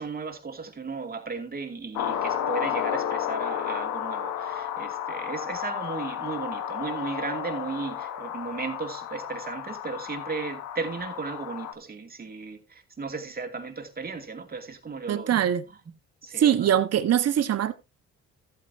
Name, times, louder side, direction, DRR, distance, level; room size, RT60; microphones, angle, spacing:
voice 1, 0.0-15.5 16.2-16.7, right 4 dB, 30° right, 2.6 m, -35 dB
sound 1, 2.0-11.7, left 9 dB, 85° left, 1.3 m, -32 dB
voice 2, 15.1-15.6 16.4-17.7, right 10 dB, 60° right, 1.4 m, -22 dB
14.0 x 8.6 x 2.8 m
cardioid pair, 90°, 29 cm